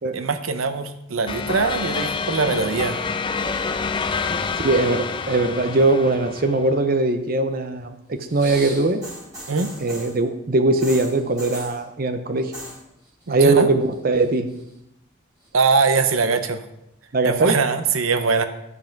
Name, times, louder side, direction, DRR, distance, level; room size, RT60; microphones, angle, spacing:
voice 1, 0.1-3.0 9.5-9.7 13.3-13.7 15.5-16.6 17.2-18.5, right 4 dB, 90° right, 9 dB, 0.8 m, -22 dB
sound 1, 1.3-6.7, left 4 dB, 25° left, 0.4 m, -27 dB
voice 2, 4.6-9.0 9.8-12.5 13.3-14.5 17.1-17.6, right 2 dB, 45° right, 7 dB, 0.7 m, -20 dB
sound 2, 8.2-10.2 10.8-11.8 12.4-12.8 13.1-13.6 13.9-14.7 15.4-15.5, right 1 dB, 20° right, 4.2 m, -37 dB
12.5 x 5.8 x 5.2 m, 0.84 s
head